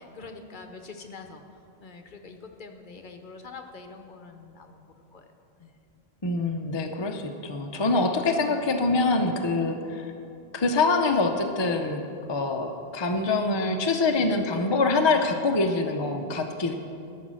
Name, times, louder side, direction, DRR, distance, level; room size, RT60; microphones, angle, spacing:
voice 1, 0.0-1.4 1.8-5.2 5.6-5.7 7.7-8.0, left 4 dB, 50° left, 5 dB, 1.0 m, -45 dB
voice 2, 6.2-10.1 10.5-12.0 12.3-16.7, left 3 dB, 30° left, 4 dB, 0.6 m, -25 dB
13.5 x 6.5 x 6.2 m, 2.6 s
omnidirectional pair, 1.1 m